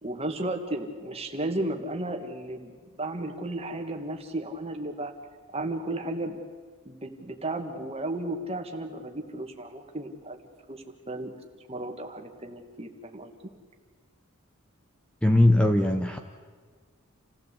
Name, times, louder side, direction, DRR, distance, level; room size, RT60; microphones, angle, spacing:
voice 1, 0.0-5.1 5.5-6.4 6.9-10.4 10.7-11.3 11.7-13.3, right 1 dB, 25° right, 4 dB, 2.0 m, -34 dB
voice 2, 15.2-16.2, left 1 dB, 5° left, 5 dB, 0.9 m, -20 dB
28.5 x 16.0 x 8.4 m, 1.6 s
head